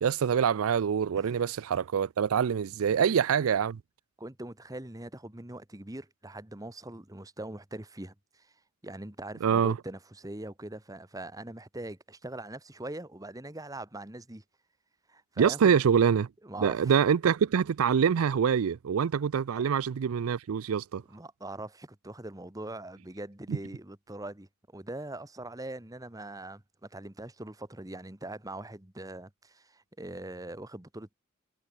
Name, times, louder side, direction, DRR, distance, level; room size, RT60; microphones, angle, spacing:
voice 1, 0.0-3.8 9.4-9.8 15.4-16.3 16.6-21.0 23.5-23.6, right 7 dB, 80° right, 0.4 m, -25 dB
voice 2, 4.2-8.5 8.8-14.4 15.1-15.8 16.4-16.9 21.1-31.1, right 1 dB, 15° right, 1.3 m, -42 dB
head